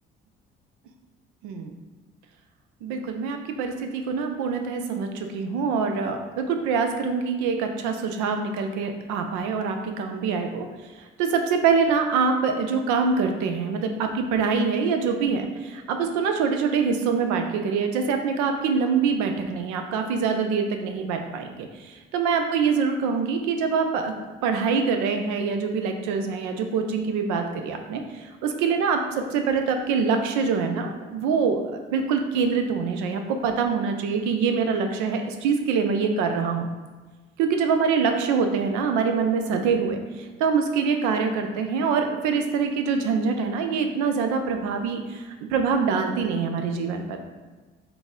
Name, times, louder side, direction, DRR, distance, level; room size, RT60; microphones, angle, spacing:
voice 1, 2.8-10.7 11.2-24.1 24.4-31.6 31.9-36.7 37.4-47.2, right 5 dB, 75° right, 5 dB, 0.5 m, -25 dB
3.9 x 2.2 x 3.7 m, 1.3 s
hypercardioid pair, 50°, 30 cm